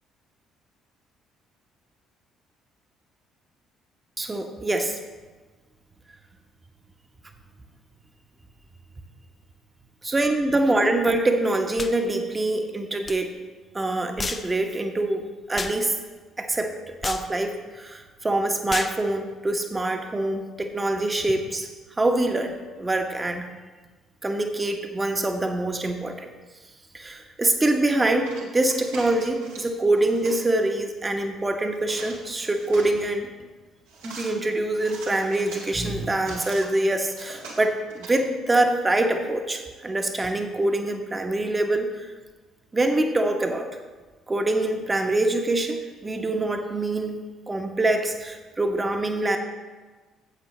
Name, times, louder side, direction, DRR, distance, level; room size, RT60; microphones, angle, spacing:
voice 1, 4.2-5.0 10.0-13.3 13.7-15.2 15.5-15.9 16.4-21.7 22.0-23.5 24.2-26.3 26.9-33.3 34.0-42.1 42.7-43.7 44.3-47.2 47.5-49.4, right 2 dB, 20° right, 5 dB, 1.3 m, -25 dB
sound 1, 11.8-12.0 13.1-13.2 14.2-14.5 15.6-15.8 17.0-17.3 18.7-19.0, left 4 dB, 35° left, 0.6 m, -31 dB
sound 2, 28.2-29.7 29.9-30.4 31.7-33.0 33.9-34.3 34.8-36.7 37.1-38.1, right 3 dB, 75° right, 2.2 m, -42 dB
13.5 x 8.2 x 3.3 m, 1.3 s
figure-of-eight pair, 50°, 0 cm